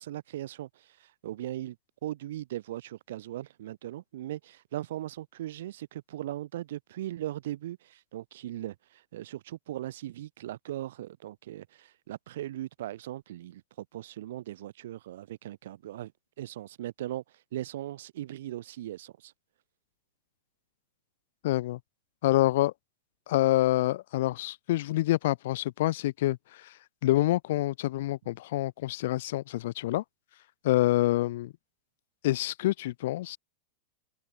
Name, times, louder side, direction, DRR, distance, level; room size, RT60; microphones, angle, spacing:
voice 1, 0.0-1.8 2.0-16.1 16.4-19.3, right 13 dB, 55° right, 2.5 m, -39 dB
voice 2, 21.4-21.8 22.2-22.7 23.3-26.7 27.0-30.0 30.6-31.5 32.2-33.4, left 16 dB, 55° left, 0.3 m, -27 dB
open air
figure-of-eight pair, 90°, 0 cm